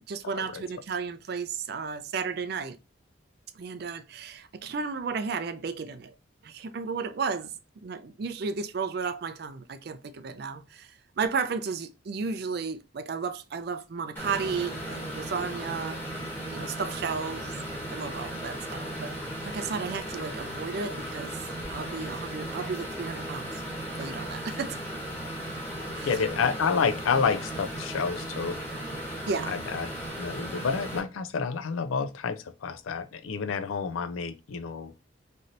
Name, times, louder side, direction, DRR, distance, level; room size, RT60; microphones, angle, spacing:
voice 1, 0.1-2.8 3.6-6.1 6.4-7.5 7.8-16.0 16.5-17.5 17.9-19.1 19.4-21.4 21.7-23.6 24.0-24.8 25.9-26.1 29.3-29.5, right 5 dB, 50° right, 0.4 m, -33 dB
sound 1, 14.2-31.0, right 1 dB, 10° left, 1.1 m, -36 dB
voice 2, 26.0-28.6 29.5-29.9 30.2-34.9, left 5 dB, 85° left, 0.4 m, -29 dB
3.2 x 2.7 x 2.5 m
head